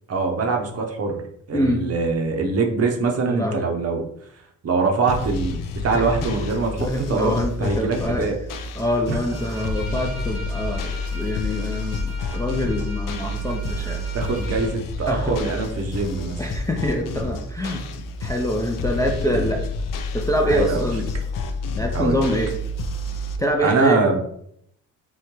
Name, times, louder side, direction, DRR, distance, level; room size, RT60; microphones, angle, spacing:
voice 1, 0.1-1.2 1.5-4.1 4.6-7.3 7.6-8.4 9.1-9.2 14.1-16.4 19.3-19.5 20.4-20.9 21.9-22.2 23.6-24.2, right 4 dB, 40° right, 3 dB, 0.7 m, -23 dB
voice 2, 3.3-3.7 5.9-6.3 6.8-8.3 8.8-14.1 15.1-15.3 16.4-17.8 18.2-19.6 20.1-21.1 21.7-22.5 23.4-24.1, equal, 10° left, 1 dB, 0.4 m, -25 dB
sound 1, 5.1-23.4, left 2 dB, 60° left, 0.5 m, -29 dB
Bowed string instrument, 9.2-14.7, equal, 35° left, 1.0 m, -40 dB
3.7 x 2.1 x 2.9 m, 0.71 s
supercardioid pair, 70°, 36 cm